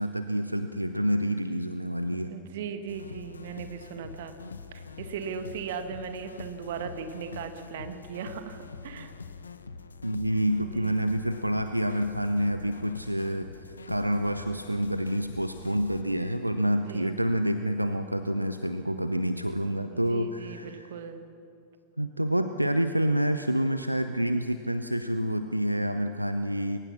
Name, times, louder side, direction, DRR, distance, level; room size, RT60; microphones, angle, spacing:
voice 1, 0.0-2.3 10.0-20.9 22.0-26.8, equal, 90° right, 9 dB, 0.6 m, -28 dB
voice 2, 2.3-4.4 4.7-9.1 10.6-11.0 16.8-17.1 19.9-21.2, right 6 dB, 55° right, 8 dB, 1.7 m, -38 dB
sound 1, 2.9-16.0, left 4 dB, 75° left, 0.8 m, -44 dB
22.5 x 19.0 x 6.1 m, 2.5 s
figure-of-eight pair, 90°, 0 cm